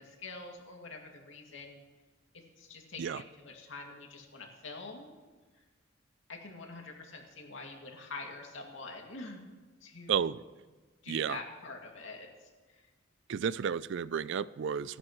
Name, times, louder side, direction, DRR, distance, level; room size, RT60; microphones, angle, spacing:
voice 1, 0.0-1.8 2.3-5.1 5.5-5.6 6.3-10.2 11.0-12.9, left 3 dB, 80° left, 1 dB, 2.3 m, -46 dB
voice 2, 10.1-10.4 11.1-11.4 13.3-15.0, right 7 dB, 65° right, 19 dB, 0.4 m, -32 dB
26.5 x 11.0 x 3.1 m, 1.3 s
head